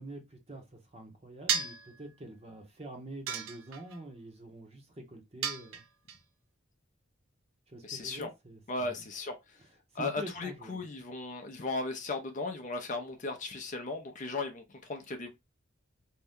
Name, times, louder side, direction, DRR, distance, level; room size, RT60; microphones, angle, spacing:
voice 1, 0.0-5.8 7.7-9.0 9.9-10.9, right 1 dB, 30° right, 0.8 m, -46 dB
sound 1, 1.5-1.9 3.3-4.0 5.4-6.2, right 7 dB, 80° right, 0.6 m, -33 dB
voice 2, 7.8-8.3 8.7-9.6 9.9-15.3, left 3 dB, 40° left, 0.5 m, -36 dB
2.7 x 2.2 x 3.4 m
head